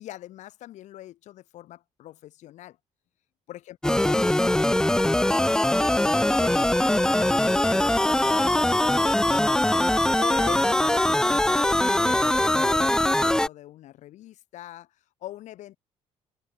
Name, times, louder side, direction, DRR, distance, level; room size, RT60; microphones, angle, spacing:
voice 1, 0.0-2.8 3.5-5.9 6.3-7.7 7.9-9.8 10.2-15.8, left 14 dB, 75° left, 7.0 m, -43 dB
sound 1, 3.8-13.5, left 1 dB, 5° left, 1.0 m, -22 dB
cardioid pair, 130°, 12 cm